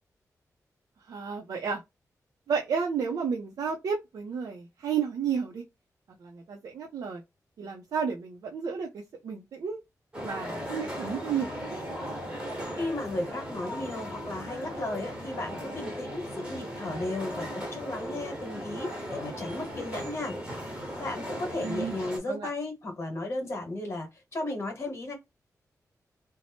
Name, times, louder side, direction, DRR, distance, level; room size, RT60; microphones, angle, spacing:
voice 1, 1.1-1.8 2.5-5.6 6.2-7.2 7.6-9.8 10.2-12.1 21.6-21.9 22.3-22.5, right 6 dB, 85° right, 0.4 m, -32 dB
sound 1, 10.1-22.2, equal, 15° right, 1.0 m, -37 dB
voice 2, 12.8-17.5 17.7-20.4 21.0-25.1, left 2 dB, 45° left, 1.0 m, -35 dB
2.6 x 2.0 x 3.2 m
wide cardioid pair, 170°, 6 cm